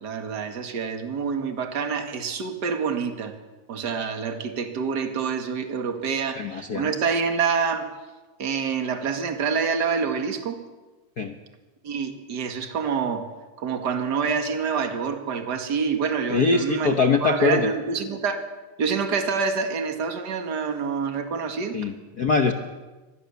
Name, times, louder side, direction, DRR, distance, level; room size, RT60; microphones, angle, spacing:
voice 1, 0.0-3.3 3.7-7.9 8.4-10.6 11.8-13.3 13.6-18.5 18.8-21.8, right 5 dB, 40° right, 6 dB, 2.2 m, -27 dB
voice 2, 6.4-6.9 11.2-11.3 16.3-17.7 21.7-22.5, left 4 dB, 55° left, 5 dB, 1.1 m, -22 dB
24.5 x 20.0 x 7.0 m, 1.2 s
omnidirectional pair, 3.4 m